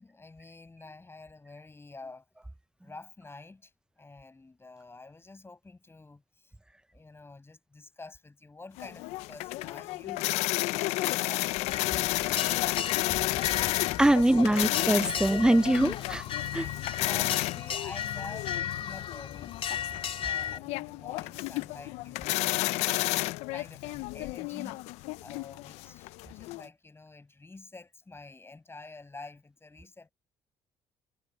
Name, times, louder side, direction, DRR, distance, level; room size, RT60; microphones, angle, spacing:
voice 1, 0.0-2.2 2.8-6.5 6.9-10.4 10.7-12.8 13.1-13.7 14.1-14.7 15.1-15.4 16.5-19.6 20.1-23.1 23.5-24.8 25.2-30.1, left 3 dB, 20° left, 6.3 m, -48 dB
sound 1, 8.8-26.7, left 20 dB, 80° left, 0.5 m, -32 dB
sound 2, 11.7-20.6, left 9 dB, 55° left, 2.7 m, -36 dB
voice 2, 14.0-16.2 16.5-16.6, right 1 dB, 5° right, 0.6 m, -23 dB
supercardioid pair, 70°, 11 cm